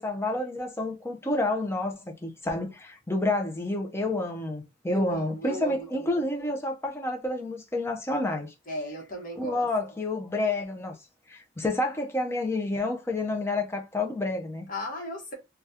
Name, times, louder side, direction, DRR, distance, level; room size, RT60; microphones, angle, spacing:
voice 1, 0.0-8.5 9.4-10.9 11.3-14.7, left 2 dB, 15° left, 0.5 m, -29 dB
voice 2, 4.9-6.2 8.7-9.7 14.7-15.3, equal, 45° left, 1.0 m, -36 dB
2.7 x 2.3 x 3.4 m
head